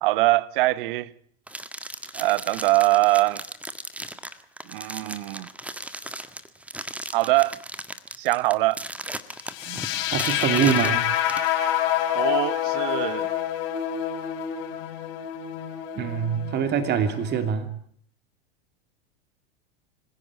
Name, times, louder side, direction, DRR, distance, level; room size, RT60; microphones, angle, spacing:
voice 1, 0.0-1.1 2.1-3.4 4.7-5.5 7.1-7.6 8.2-8.8 12.1-13.3, right 20 dB, 55° right, 1.1 m, -22 dB
sound 1, 1.5-11.5, right 1 dB, 5° right, 1.7 m, -37 dB
sound 2, 9.5-17.5, left 11 dB, 50° left, 3.0 m, -27 dB
voice 2, 9.6-11.1 16.0-17.7, right 7 dB, 35° right, 2.8 m, -25 dB
26.0 x 16.5 x 8.7 m
hypercardioid pair, 95°, 31 cm